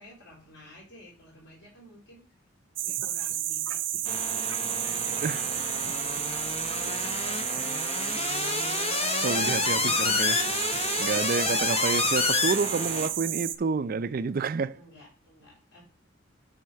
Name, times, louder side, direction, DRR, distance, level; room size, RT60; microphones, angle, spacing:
voice 1, 0.0-2.2 2.8-8.7 14.7-15.8, left 1 dB, 65° left, 4.3 m, -52 dB
sound 1, 2.8-13.6, right 12 dB, 80° right, 0.7 m, -31 dB
sound 2, 4.1-13.1, left 4 dB, 35° left, 0.7 m, -29 dB
voice 2, 9.2-14.8, right 5 dB, 50° right, 0.4 m, -29 dB
9.3 x 3.6 x 5.7 m
head